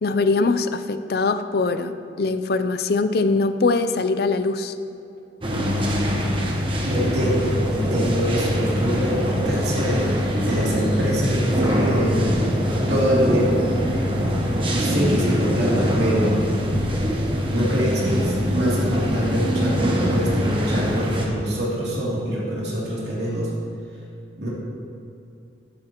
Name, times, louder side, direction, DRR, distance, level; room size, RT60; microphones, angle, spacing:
voice 1, 0.0-4.7, left 3 dB, 55° left, 10 dB, 0.5 m, -22 dB
sound 1, 5.4-21.3, equal, 30° right, 1.2 m, -23 dB
voice 2, 6.8-12.4 12.9-14.0 14.7-16.4 17.5-23.5 24.4-24.5, equal, 65° right, -7 dB, 2.9 m, -24 dB
13.0 x 11.5 x 3.0 m, 2.7 s
head